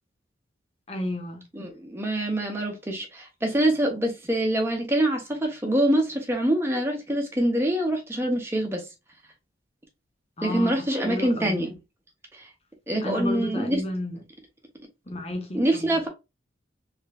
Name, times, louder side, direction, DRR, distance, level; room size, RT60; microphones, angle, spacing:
voice 1, 0.9-1.4 10.4-11.7 13.0-14.2 15.1-16.0, left 1 dB, 30° left, 0.8 m, -32 dB
voice 2, 1.5-8.8 10.4-11.7 12.3-12.4 12.9-13.8 15.5-16.1, right 1 dB, 15° right, 0.8 m, -25 dB
3.3 x 3.1 x 2.3 m
head